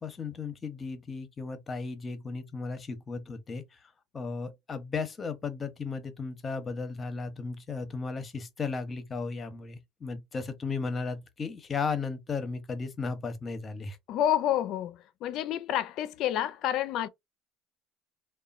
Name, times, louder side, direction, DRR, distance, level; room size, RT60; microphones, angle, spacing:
voice 1, 0.0-14.0, left 4 dB, 30° left, 0.7 m, -35 dB
voice 2, 14.1-17.1, left 11 dB, 60° left, 0.4 m, -29 dB
3.0 x 2.2 x 2.4 m
supercardioid pair, 95°, 0 cm